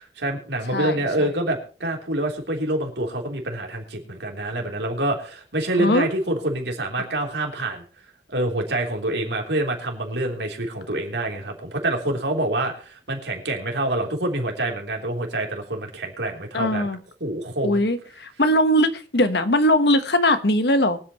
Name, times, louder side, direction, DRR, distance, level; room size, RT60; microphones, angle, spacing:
voice 1, 0.0-7.8 8.3-16.9 17.2-17.8, right 1 dB, 70° right, 2 dB, 3.5 m, -26 dB
voice 2, 0.7-1.3 5.8-6.1 16.5-17.0 17.6-21.0, left 1 dB, 70° left, 10 dB, 1.3 m, -20 dB
23.5 x 8.6 x 3.1 m, 0.39 s
head